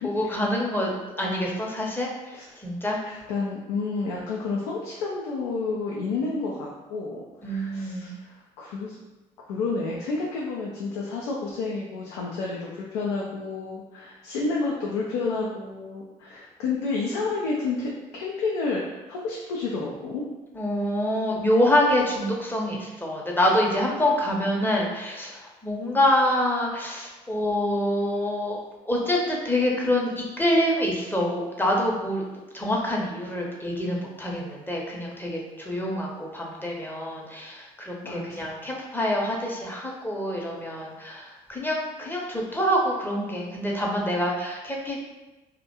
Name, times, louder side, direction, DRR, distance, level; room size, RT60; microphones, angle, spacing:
voice 1, 0.0-3.0 7.4-8.2 20.5-28.6 28.9-32.2 32.5-45.0, left 1 dB, 10° left, -2 dB, 0.6 m, -26 dB
voice 2, 3.0-9.0 9.5-20.2 38.0-38.6, left 3 dB, 80° left, -3 dB, 0.4 m, -30 dB
2.4 x 2.1 x 2.8 m, 1.1 s
hypercardioid pair, 55°, 18 cm